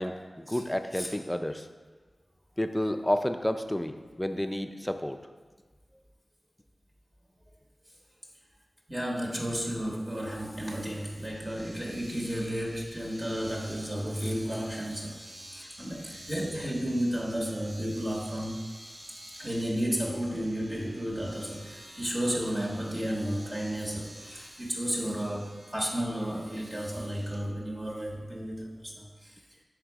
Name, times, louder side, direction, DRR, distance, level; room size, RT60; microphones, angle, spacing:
voice 1, 0.0-1.7 2.6-5.2, left 1 dB, 10° left, 7 dB, 0.4 m, -30 dB
voice 2, 8.9-15.2 15.5-18.6 19.4-29.4, equal, 25° right, -2 dB, 1.1 m, -33 dB
Domestic sounds home sounds, 10.6-27.4, right 1 dB, 60° right, 1.4 m, -50 dB
6.2 x 3.8 x 4.6 m, 1.4 s
wide cardioid pair, 55°, 0 cm